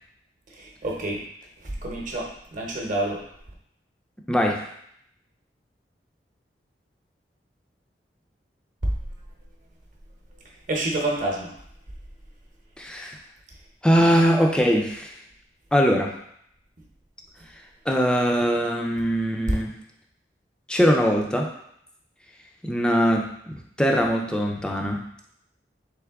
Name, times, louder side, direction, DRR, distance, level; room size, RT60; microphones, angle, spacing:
voice 1, 0.5-1.2 1.6-3.2 10.7-11.5, right 2 dB, 50° right, -1 dB, 0.9 m, -28 dB
voice 2, 4.3-4.7 12.8-13.2 13.8-15.1 15.7-16.1 17.9-19.7 20.7-21.5 22.6-25.1, equal, 5° left, 1 dB, 0.5 m, -21 dB
3.7 x 3.4 x 3.5 m, 0.70 s
head